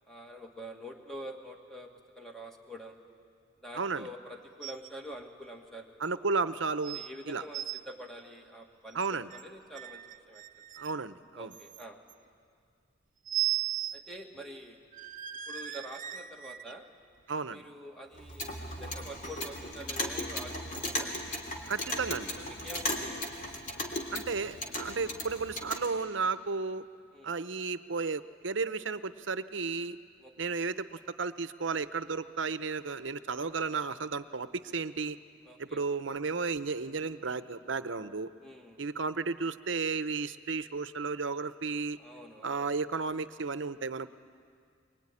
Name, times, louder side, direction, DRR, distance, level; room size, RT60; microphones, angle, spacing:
voice 1, 0.1-3.0 3.6-6.0 6.9-10.0 10.3-10.6 11.4-12.0 13.9-14.8 15.5-16.8 17.5-21.1 22.4-23.3 27.1-27.3 30.2-30.3 35.4-35.8 38.4-38.9 42.0-42.7, equal, ahead, 2 dB, 2.0 m, -46 dB
voice 2, 3.7-4.1 6.0-7.0 7.2-7.4 8.9-9.3 10.8-11.5 17.3-17.6 21.7-22.3 24.1-26.8 27.2-30.0 30.4-35.2 35.6-38.3 38.8-42.0 42.4-44.1, right 4 dB, 75° right, 13 dB, 0.8 m, -33 dB
sound 1, 4.6-4.9 5.2-5.3 6.0-6.1 6.8-7.1 7.4-7.8 8.9-9.4 9.7-11.0 11.5-12.1 13.3-14.0 14.4-14.5 14.9-16.7 17.3-17.4, right 14 dB, 40° right, 0.6 m, -36 dB
Clock, 18.2-25.9, left 1 dB, 40° left, 3.2 m, -37 dB
24.0 x 23.0 x 9.9 m, 2.2 s
head